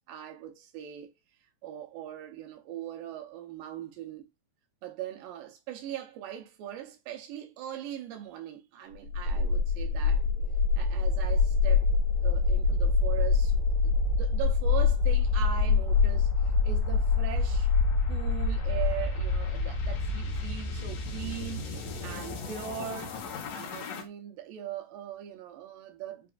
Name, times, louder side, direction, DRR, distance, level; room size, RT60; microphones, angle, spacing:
voice 1, 0.1-1.1 1.6-4.3 4.8-10.2 10.8-11.9 12.2-13.5 13.8-17.7 18.1-23.2 23.6-26.3, right 11 dB, 85° right, 2.5 m, -40 dB
sound 1, 9.1-24.0, left 4 dB, 65° left, 1.9 m, -26 dB
5.9 x 3.3 x 2.4 m
omnidirectional pair, 4.0 m